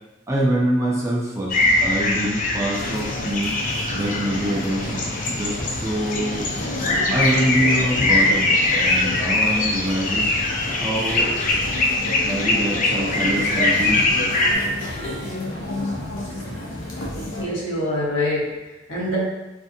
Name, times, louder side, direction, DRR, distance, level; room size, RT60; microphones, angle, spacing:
voice 1, 0.3-1.6 1.8-3.5 3.9-6.5 7.1-10.3 10.7-11.3 12.1-14.0 16.5-16.8 17.3-17.4, right 1 dB, 15° right, -4 dB, 0.5 m, -25 dB
sound 1, 1.5-14.5, left 2 dB, 45° left, 0.4 m, -22 dB
sound 2, 2.7-17.4, left 1 dB, 90° left, 0.7 m, -31 dB
voice 2, 17.4-19.2, left 1 dB, 70° left, -6 dB, 0.9 m, -25 dB
2.6 x 2.5 x 2.5 m, 1.1 s
head